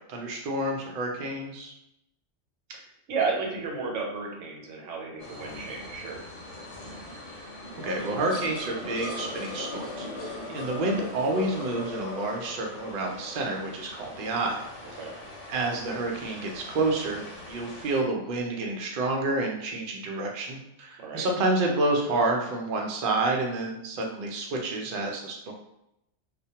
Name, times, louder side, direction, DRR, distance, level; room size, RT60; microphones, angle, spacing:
voice 1, 0.1-1.7 7.3-7.4 7.8-15.0 15.5-25.5, right 2 dB, 60° right, 0 dB, 0.6 m, -29 dB
voice 2, 2.7-6.2 10.5-10.7 15.0-15.1 21.0-21.3, right 4 dB, 90° right, 0 dB, 0.9 m, -33 dB
sound 1, 5.2-18.0, left 2 dB, 85° left, 1.0 m, -39 dB
2.1 x 2.1 x 2.8 m, 0.83 s
omnidirectional pair, 1.2 m